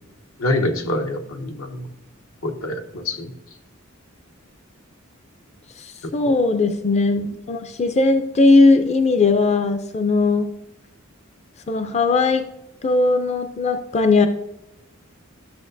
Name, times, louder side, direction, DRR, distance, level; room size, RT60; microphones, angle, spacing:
voice 1, 0.4-1.9 2.4-3.3 6.2-6.4, left 1 dB, 80° left, 4 dB, 1.1 m, -25 dB
voice 2, 5.8-10.5 11.7-12.5 12.8-14.3, left 3 dB, 30° left, 8 dB, 0.4 m, -18 dB
13.0 x 6.5 x 2.6 m, 0.89 s
head